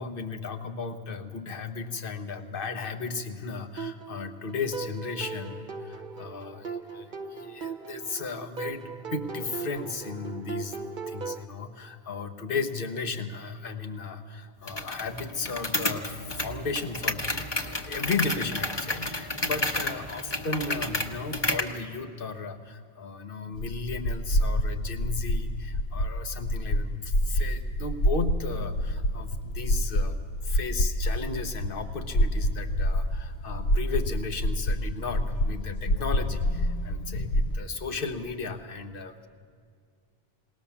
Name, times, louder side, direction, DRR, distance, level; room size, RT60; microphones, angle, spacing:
voice 1, 0.0-39.3, left 4 dB, 60° left, 8 dB, 1.3 m, -35 dB
sound 1, 3.8-11.4, right 5 dB, 55° right, 1.0 m, -38 dB
sound 2, 14.7-21.8, left 1 dB, 25° left, 1.1 m, -31 dB
sound 3, 23.6-37.6, equal, 75° left, 0.9 m, -27 dB
20.0 x 18.5 x 7.1 m, 2.1 s
omnidirectional pair, 1.1 m